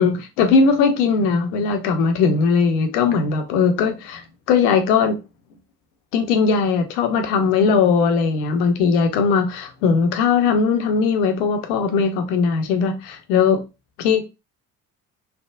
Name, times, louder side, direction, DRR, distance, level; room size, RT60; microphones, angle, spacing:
voice 1, 0.0-5.2 6.1-13.6 14.0-14.2, left 5 dB, 70° left, 0.7 m, -19 dB
3.3 x 2.0 x 2.2 m
figure-of-eight pair, 50°, 47 cm